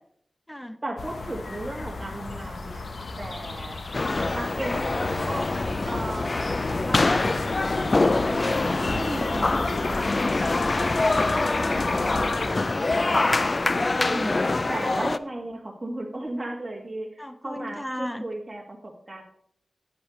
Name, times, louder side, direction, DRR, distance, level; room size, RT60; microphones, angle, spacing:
voice 1, 0.8-2.9 3.2-3.8 4.3-5.4 5.8-6.5 6.8-10.1 13.9-19.2, right 1 dB, 25° right, -1 dB, 2.1 m, -36 dB
sound 1, 1.0-12.5, left 3 dB, 70° left, 0.9 m, -34 dB
sound 2, 3.9-15.2, left 2 dB, 40° left, 0.3 m, -24 dB
voice 2, 14.1-14.5 17.2-18.2, equal, 10° left, 10 dB, 0.7 m, -38 dB
10.5 x 9.5 x 3.2 m, 0.66 s
wide cardioid pair, 105°, 0 cm